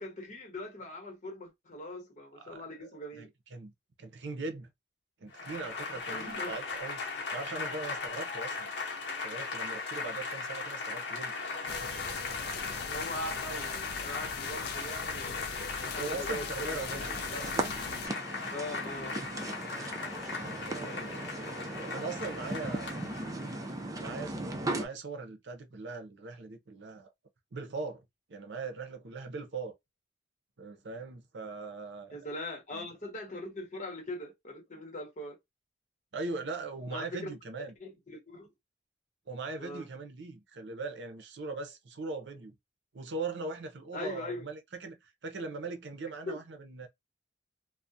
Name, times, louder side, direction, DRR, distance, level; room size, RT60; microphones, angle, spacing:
voice 1, 0.0-3.3 6.1-6.6 12.8-17.1 18.5-19.2 32.1-35.4 36.9-38.5 39.6-39.9 43.9-44.5 46.2-46.4, left 1 dB, 45° left, 0.9 m, -41 dB
voice 2, 2.4-3.7 4.0-4.7 5.2-7.0 7.3-8.7 9.2-11.3 16.0-17.8 20.4-23.2 24.0-27.1 27.5-28.0 28.3-29.8 30.6-32.2 32.7-32.9 36.1-37.7 39.3-42.5 42.9-46.9, right 3 dB, 75° right, 0.6 m, -40 dB
Applause / Crowd, 5.3-23.9, left 4 dB, 75° left, 0.8 m, -38 dB
sound 1, 11.7-18.1, left 6 dB, 60° left, 0.4 m, -41 dB
sound 2, 16.7-24.9, right 2 dB, 20° right, 0.4 m, -38 dB
2.3 x 2.1 x 2.6 m
head